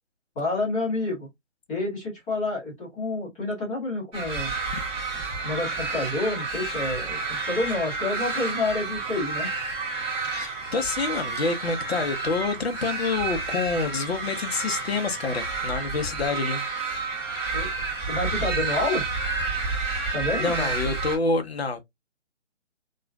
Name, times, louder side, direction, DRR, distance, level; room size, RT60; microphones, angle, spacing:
voice 1, 0.3-1.3 1.7-4.5 5.4-9.5 17.5-17.7 18.1-19.1 20.1-20.7, left 2 dB, 10° left, 1.0 m, -28 dB
sound 1, 4.1-21.2, right 4 dB, 15° right, 1.0 m, -30 dB
voice 2, 10.2-16.6 20.4-21.8, left 4 dB, 55° left, 0.7 m, -27 dB
2.9 x 2.3 x 2.2 m
figure-of-eight pair, 150°, 37 cm